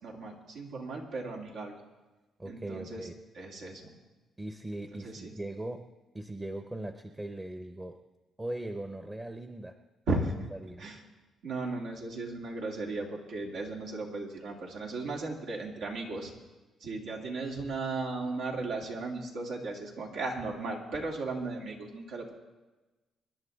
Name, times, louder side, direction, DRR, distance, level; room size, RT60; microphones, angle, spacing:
voice 1, 0.0-1.7 2.5-3.1 3.4-3.9 5.0-5.3 10.1-10.3 10.8-11.0 11.4-16.3 16.8-22.3, right 3 dB, 80° right, -1 dB, 2.8 m, -36 dB
voice 2, 2.4-3.2 4.4-5.8 6.1-8.0 8.4-9.8 10.5-10.8, right 1 dB, 20° right, 7 dB, 0.9 m, -39 dB
25.0 x 11.0 x 3.6 m, 1.2 s
cardioid pair, 90°, 0 cm